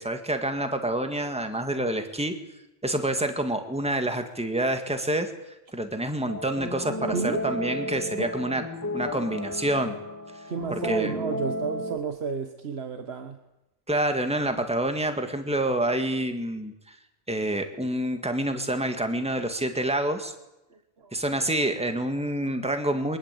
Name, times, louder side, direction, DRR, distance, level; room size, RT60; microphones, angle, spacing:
voice 1, 0.0-2.3 2.8-5.3 5.7-8.6 8.9-9.9 10.7-11.1 13.9-16.9 17.3-20.3 21.1-23.2, right 1 dB, 5° right, 6 dB, 2.0 m, -27 dB
sound 1, 6.3-12.0, equal, 15° left, 2.0 m, -33 dB
voice 2, 7.1-7.5 8.2-8.3 10.5-13.4 20.7-21.1, right 5 dB, 75° right, 7 dB, 1.6 m, -32 dB
23.5 x 19.5 x 8.5 m, 0.94 s
omnidirectional pair, 1.1 m